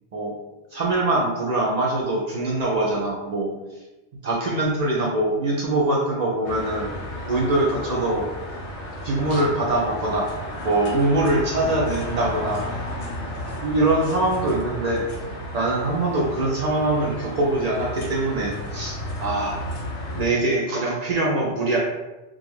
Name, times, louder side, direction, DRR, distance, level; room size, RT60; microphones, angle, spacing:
voice 1, 0.7-3.5 4.2-6.9 7.2-8.3 9.0-10.3 10.6-12.6 13.6-15.1 15.5-19.6 20.1-21.8, right 2 dB, 65° right, -3 dB, 0.4 m, -23 dB
sound 1, 6.4-20.3, left 1 dB, 85° left, 0.9 m, -33 dB
2.4 x 2.2 x 3.1 m, 1.1 s
omnidirectional pair, 1.2 m